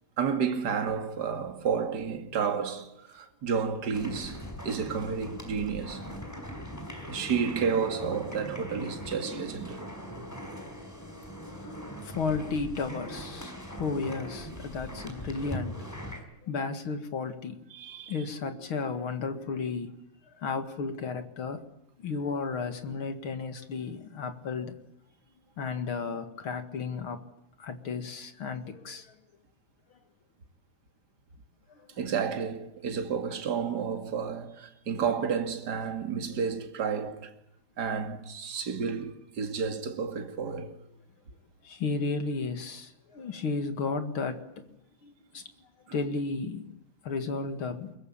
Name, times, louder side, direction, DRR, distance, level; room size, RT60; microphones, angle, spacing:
voice 1, 0.2-6.1 7.1-9.9 17.7-18.2 32.0-37.3 37.8-40.8, right 6 dB, 35° right, 2.0 m, -31 dB
sound 1, 3.9-16.2, equal, 5° left, 4.6 m, -41 dB
voice 2, 11.6-15.8 16.4-17.6 18.1-19.9 20.4-21.6 22.0-24.7 25.6-27.2 27.6-29.2 31.7-32.0 41.6-44.7 45.0-45.4 45.9-46.6 47.0-48.0, left 4 dB, 45° left, 1.9 m, -33 dB
23.5 x 22.0 x 8.7 m
omnidirectional pair, 4.6 m